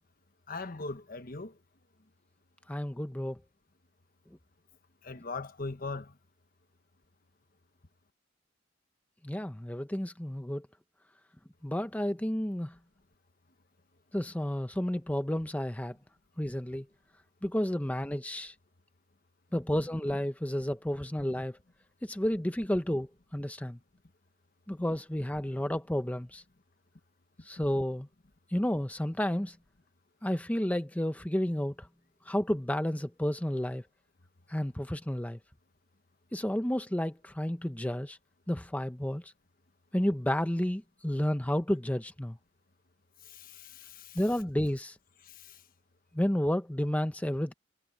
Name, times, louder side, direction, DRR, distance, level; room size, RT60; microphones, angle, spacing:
voice 1, 0.5-1.5 5.0-6.1 43.3-44.2 45.3-45.5, left 3 dB, 50° left, 1.3 m, -40 dB
voice 2, 2.7-3.4 9.2-10.7 11.6-12.7 14.1-16.0 16.4-16.8 17.4-18.5 19.5-21.6 22.0-23.8 24.7-26.4 27.4-28.1 28.5-29.6 30.2-31.9 32.3-33.8 34.5-35.4 36.3-38.2 38.5-39.3 39.9-42.4 44.1-45.0 46.1-47.5, equal, 10° left, 0.7 m, -31 dB
head